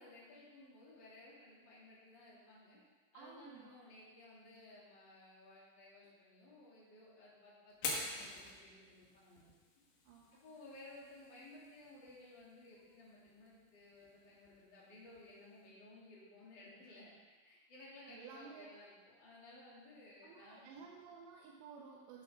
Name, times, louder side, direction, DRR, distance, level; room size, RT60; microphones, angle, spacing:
voice 1, 0.0-2.8 3.1-9.5 10.3-17.1 17.4-20.7, left 2 dB, 30° left, -7 dB, 2.6 m, -58 dB
voice 2, 3.1-3.8 10.1-10.4 18.1-18.7 20.2-22.2, right 5 dB, 80° right, -2 dB, 2.9 m, -54 dB
Fire, 7.7-15.7, left 3 dB, 75° left, 3.5 m, -49 dB
12.5 x 7.6 x 3.7 m, 1.4 s
omnidirectional pair, 5.1 m